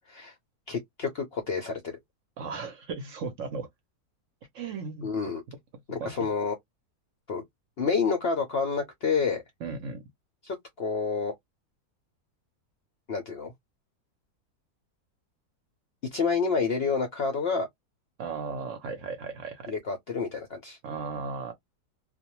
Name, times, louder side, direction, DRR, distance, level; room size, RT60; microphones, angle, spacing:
voice 1, 0.7-2.0 5.0-5.4 5.9-6.6 7.3-7.4 7.8-9.4 10.4-11.3 13.1-13.5 16.1-17.7 19.7-20.8, left 5 dB, 60° left, 0.6 m, -29 dB
voice 2, 2.4-3.7 4.5-5.1 6.0-6.3 9.6-10.0 18.2-19.8 20.8-21.5, right 4 dB, 60° right, 0.9 m, -36 dB
2.5 x 2.1 x 2.8 m
omnidirectional pair, 1.7 m